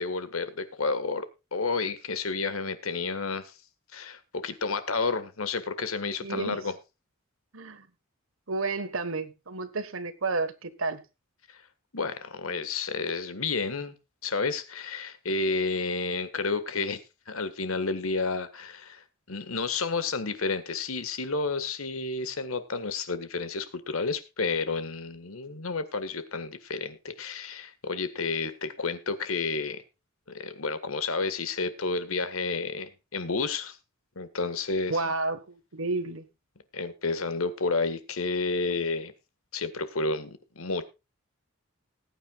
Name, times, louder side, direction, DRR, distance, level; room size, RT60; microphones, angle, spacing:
voice 1, 0.0-3.5 3.9-6.7 11.5-11.6 11.9-14.0 14.2-29.8 30.3-33.8 34.1-35.0 36.7-39.1 39.5-40.9, left 4 dB, 80° left, 1.6 m, -31 dB
voice 2, 6.2-6.6 7.5-7.9 8.5-11.0 34.9-36.2, right 3 dB, 70° right, 1.4 m, -31 dB
20.0 x 9.3 x 2.4 m
head